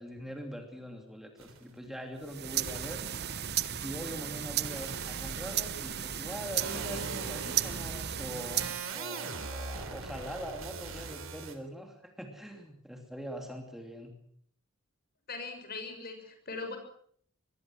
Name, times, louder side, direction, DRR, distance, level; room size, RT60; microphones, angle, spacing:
voice 1, 0.0-3.0 3.7-14.1, equal, ahead, 3 dB, 2.8 m, -43 dB
sound 1, 1.4-1.6 2.7-11.5, right 4 dB, 65° right, 3.6 m, -41 dB
sound 2, 2.2-8.9, right 11 dB, 50° right, 1.0 m, -35 dB
voice 2, 15.3-16.8, left 3 dB, 45° left, 7 dB, 6.3 m, -40 dB
25.0 x 21.0 x 6.2 m, 0.62 s
head